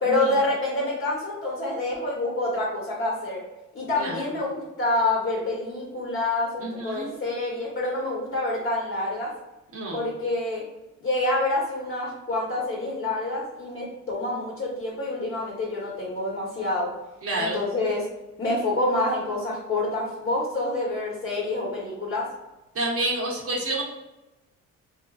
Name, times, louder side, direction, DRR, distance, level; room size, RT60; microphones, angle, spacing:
voice 1, 0.0-3.4 3.7-9.3 9.9-10.6 11.0-16.9 17.3-18.1 18.4-22.3, left 2 dB, 40° left, -4 dB, 1.0 m, -27 dB
voice 2, 4.0-4.3 6.6-7.1 9.7-10.0 17.2-17.6 22.7-23.8, right 2 dB, 50° right, -3 dB, 0.8 m, -29 dB
3.4 x 2.5 x 2.4 m, 1.0 s
cardioid pair, 90°, 30 cm